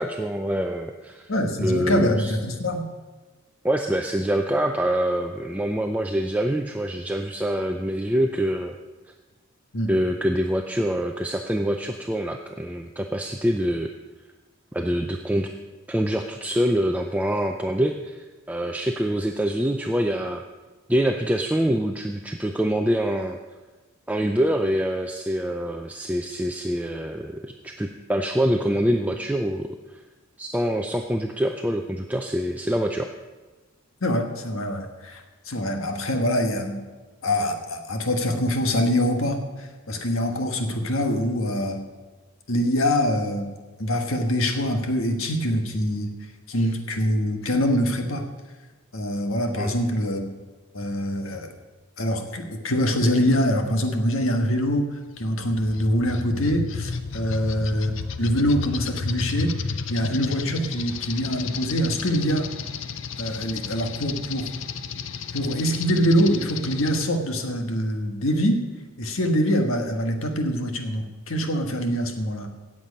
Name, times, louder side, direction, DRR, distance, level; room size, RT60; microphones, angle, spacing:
voice 1, 0.0-1.3 1.6-2.3 3.6-8.7 9.9-13.9 14.7-15.5 15.9-20.4 20.9-23.4 24.1-29.8 30.4-33.1 49.6-49.7, equal, 5° right, 4 dB, 0.5 m, -25 dB
voice 2, 1.3-2.9 9.7-9.9 34.0-36.8 37.2-41.8 42.5-43.5 43.8-46.1 46.5-48.3 48.9-50.2 50.7-51.5 52.0-59.5 59.9-62.5 63.2-64.5 65.3-68.6 69.0-72.5, equal, 80° left, 5 dB, 1.5 m, -24 dB
sound 1, 55.2-67.1, left 5 dB, 65° left, 0.6 m, -32 dB
17.0 x 7.5 x 5.3 m, 1.2 s
head